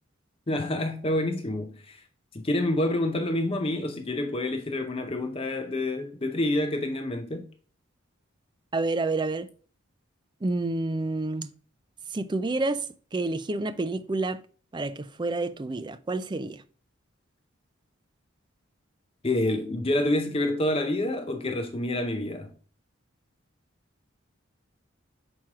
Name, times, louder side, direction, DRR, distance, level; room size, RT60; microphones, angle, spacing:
voice 1, 0.5-2.0 2.3-7.5 19.2-22.5, left 1 dB, 30° left, 0.6 m, -28 dB
voice 2, 8.7-9.5 10.4-11.5 12.1-12.8 13.1-14.4 14.7-16.6, right 2 dB, 20° right, 0.4 m, -29 dB
6.1 x 4.5 x 3.6 m
head